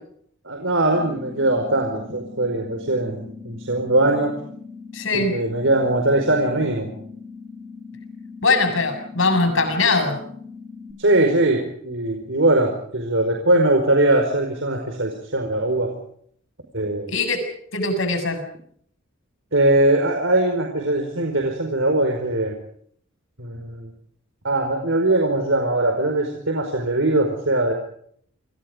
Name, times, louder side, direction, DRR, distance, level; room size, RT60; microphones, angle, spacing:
voice 1, 0.4-4.3 5.1-6.9 11.0-15.9 16.7-17.1 19.5-22.6 23.4-23.9 24.4-27.7, right 2 dB, 65° right, 3 dB, 4.9 m, -21 dB
sound 1, 0.9-10.9, left 4 dB, 15° right, 4.1 m, -40 dB
voice 2, 4.9-5.3 8.4-10.2 17.1-17.4 17.7-18.4, left 3 dB, 65° left, 8 dB, 7.1 m, -21 dB
29.5 x 25.0 x 5.1 m, 0.64 s
head